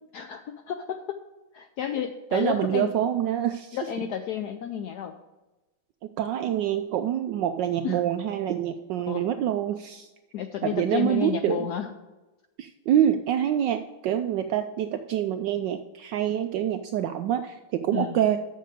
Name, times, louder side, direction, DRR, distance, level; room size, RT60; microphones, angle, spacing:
voice 1, 0.1-1.2 1.5-2.9 3.7-5.1 7.8-8.0 9.1-9.2 10.3-11.9 17.9-18.2, left 9 dB, 85° left, 7 dB, 0.9 m, -31 dB
voice 2, 2.3-3.8 6.2-10.1 10.6-11.7 12.6-18.4, right 10 dB, 75° right, 8 dB, 1.1 m, -26 dB
6.7 x 6.6 x 7.8 m, 1.1 s
omnidirectional pair, 2.3 m